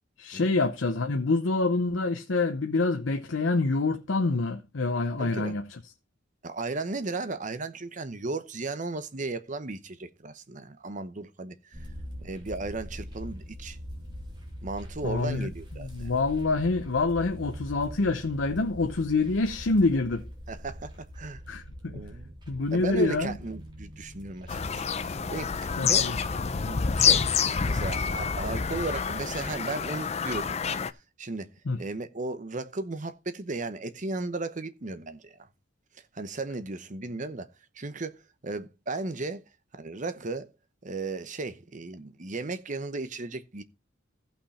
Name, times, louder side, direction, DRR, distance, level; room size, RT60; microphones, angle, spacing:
voice 1, 0.2-5.8 15.0-15.5 15.8-20.2 21.5-22.1 22.5-23.3 25.8-26.2 31.7-31.8, left 3 dB, 80° left, 0.7 m, -26 dB
voice 2, 5.2-5.5 6.4-11.9 12.2-13.8 14.6-16.1 20.5-21.4 21.9-22.3 22.7-26.1 26.5-30.8 31.2-31.5 31.8-35.5 36.1-37.5 37.7-39.4 39.7-40.5 40.8-43.6, right 3 dB, 40° right, 0.9 m, -35 dB
sound 1, 11.7-29.0, equal, 25° right, 3.4 m, -43 dB
Bird vocalization bird call bird song, 24.5-30.9, left 6 dB, 35° left, 0.5 m, -27 dB
15.0 x 5.8 x 4.2 m
head